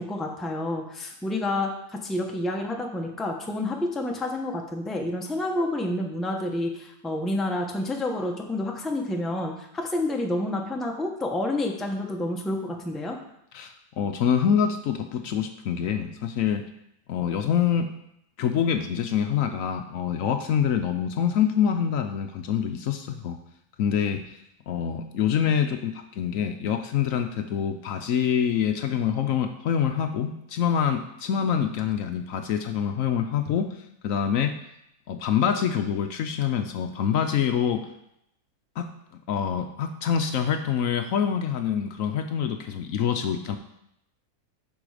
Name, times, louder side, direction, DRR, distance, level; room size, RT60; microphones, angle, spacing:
voice 1, 0.0-13.2, left 1 dB, ahead, 1 dB, 0.7 m, -29 dB
voice 2, 13.5-16.6 17.1-17.9 18.4-23.4 23.8-24.4 24.7-33.7 34.0-34.6 35.1-37.8 38.8-38.9 39.3-43.6, left 8 dB, 70° left, 7 dB, 1.0 m, -25 dB
8.8 x 6.2 x 4.9 m, 0.79 s
omnidirectional pair, 1.6 m